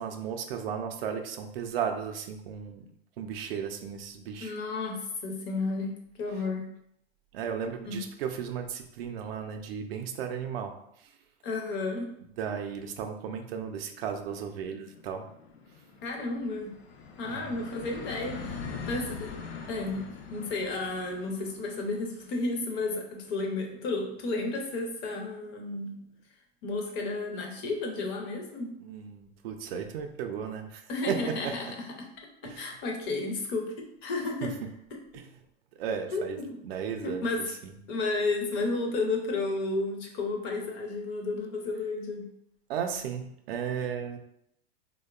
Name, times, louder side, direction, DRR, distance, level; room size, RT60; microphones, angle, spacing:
voice 1, 0.0-2.8 3.2-4.5 7.3-10.7 12.4-15.2 17.2-17.6 28.8-31.5 32.4-32.7 34.4-34.5 35.1-35.2 35.8-36.4 36.6-37.7 42.7-44.2, right 7 dB, 65° right, 5 dB, 0.5 m, -35 dB
voice 2, 4.4-5.9 6.2-6.7 7.9-8.0 11.4-12.1 16.0-16.7 17.2-18.6 18.9-19.3 19.7-25.9 26.6-28.7 30.9-32.1 32.4-33.7 34.0-34.5 36.1-36.6 37.0-37.5 37.9-42.3, left 3 dB, 35° left, 2 dB, 0.5 m, -32 dB
sound 1, 13.8-25.0, left 5 dB, 80° left, 0.6 m, -44 dB
2.7 x 2.1 x 2.3 m, 0.73 s
hypercardioid pair, 120°, 32 cm